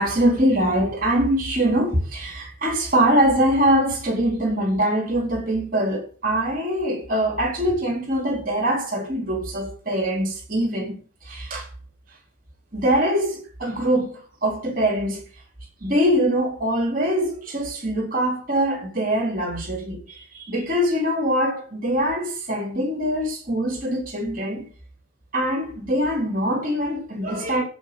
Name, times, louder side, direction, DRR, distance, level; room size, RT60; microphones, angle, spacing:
voice 1, 0.0-11.7 12.7-15.2 15.8-24.7 25.3-27.6, equal, 40° right, 4.1 m, -23 dB
16.5 x 5.6 x 8.1 m
head